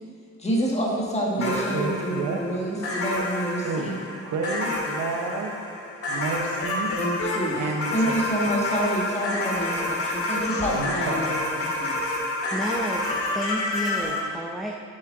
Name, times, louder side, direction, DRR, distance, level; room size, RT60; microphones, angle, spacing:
voice 1, 0.4-4.0 7.0-7.6 7.9-12.0, right 1 dB, 20° left, -3 dB, 1.6 m, -28 dB
voice 2, 1.3-2.4 3.6-3.9 4.2-5.5 6.1-6.9 7.6-8.2 10.7-11.4, right 3 dB, 80° right, 3 dB, 0.9 m, -30 dB
sound 1, 1.4-14.2, left 2 dB, 50° left, 2.0 m, -29 dB
voice 3, 12.5-14.8, equal, ahead, 0 dB, 0.6 m, -31 dB
7.7 x 7.4 x 3.8 m, 2.1 s
cardioid pair, 90°, 30 cm